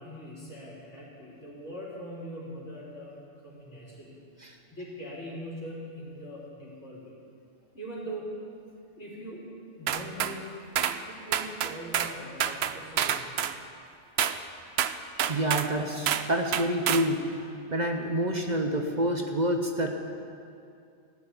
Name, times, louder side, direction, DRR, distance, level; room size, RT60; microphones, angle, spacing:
voice 1, 0.0-4.2 4.7-7.1 7.7-8.3 9.0-9.5 9.8-10.6 11.1-13.3, equal, 70° left, -6 dB, 4.4 m, -42 dB
sound 1, 9.9-10.4 10.8-11.0 11.3-12.1 12.4-13.6 14.2-14.4 14.8-15.7 16.1-16.3 16.5-17.1, right 9 dB, 65° right, 0.8 m, -28 dB
voice 2, 15.3-17.4 17.7-19.9, right 1 dB, 40° right, 3 dB, 1.0 m, -28 dB
14.5 x 8.0 x 9.8 m, 2.5 s
omnidirectional pair, 1.2 m